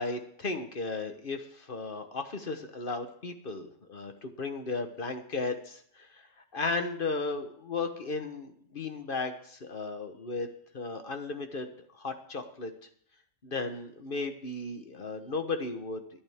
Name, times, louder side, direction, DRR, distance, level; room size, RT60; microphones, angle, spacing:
voice 1, 0.0-6.2 6.5-10.5 10.7-11.7 11.9-12.7 13.4-16.0, left 3 dB, 45° left, 6 dB, 1.3 m, -35 dB
24.5 x 8.7 x 3.5 m, 0.62 s
omnidirectional pair, 1.3 m